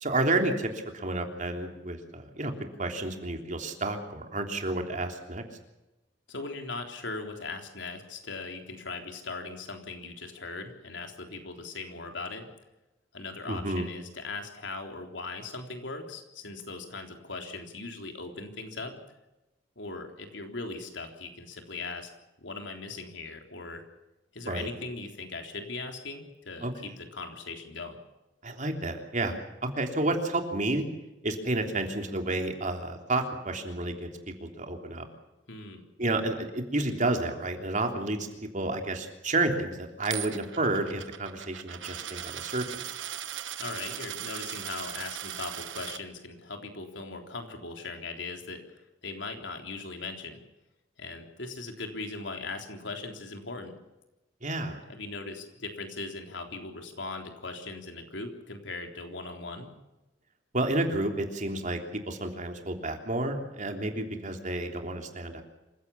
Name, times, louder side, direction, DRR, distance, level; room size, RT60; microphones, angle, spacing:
voice 1, 0.0-5.4 13.5-13.9 24.5-24.7 26.6-26.7 28.4-30.8 31.2-34.1 34.4-35.1 36.0-38.3 38.5-42.8 54.4-54.8 60.5-61.8 62.1-65.4, right 2 dB, 45° right, 4 dB, 3.3 m, -30 dB
voice 2, 6.3-12.5 13.1-19.0 19.8-22.1 22.4-23.8 24.3-28.0 35.5-35.8 43.6-50.4 51.0-53.7 54.9-59.7, left 3 dB, 80° left, 4 dB, 3.7 m, -39 dB
Coin (dropping), 40.0-46.0, right 10 dB, 90° right, 1.3 m, -38 dB
27.0 x 16.0 x 7.2 m, 0.99 s
head